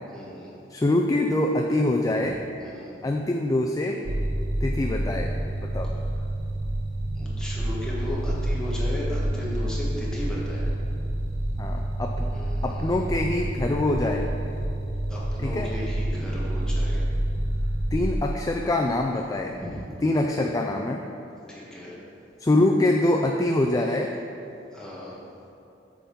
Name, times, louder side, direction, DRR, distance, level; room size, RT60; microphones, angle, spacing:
voice 1, 0.1-0.5 2.6-2.9 4.6-4.7 7.1-10.7 12.3-12.9 15.1-17.0 19.5-19.8 21.5-21.9 24.7-25.2, left 1 dB, 5° left, -7 dB, 1.6 m, -36 dB
voice 2, 0.7-2.4 3.0-4.3 4.6-5.3 5.6-5.9 11.6-12.3 12.6-14.3 15.4-15.7 17.9-19.6 20.0-21.0 22.4-24.1, left 1 dB, 20° left, 2 dB, 0.3 m, -24 dB
sound 1, 4.0-18.1, right 1 dB, 55° right, 0.8 m, -28 dB
8.3 x 3.9 x 6.9 m, 2.7 s
head